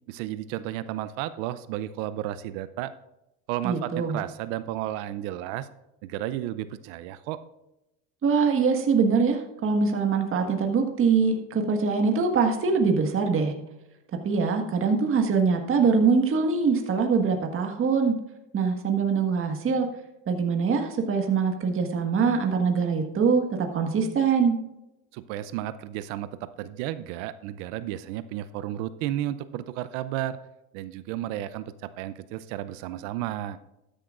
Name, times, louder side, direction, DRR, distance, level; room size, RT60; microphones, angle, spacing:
voice 1, 0.1-2.9 3.5-5.7 6.0-7.4 25.1-30.4 30.7-33.6, right 13 dB, 75° right, 14 dB, 0.6 m, -33 dB
voice 2, 3.6-4.2 8.2-13.5 14.2-18.1 18.5-19.9 20.3-24.6, right 5 dB, 35° right, 3 dB, 1.6 m, -23 dB
13.0 x 10.0 x 2.5 m, 0.93 s
supercardioid pair, 110°, 37 cm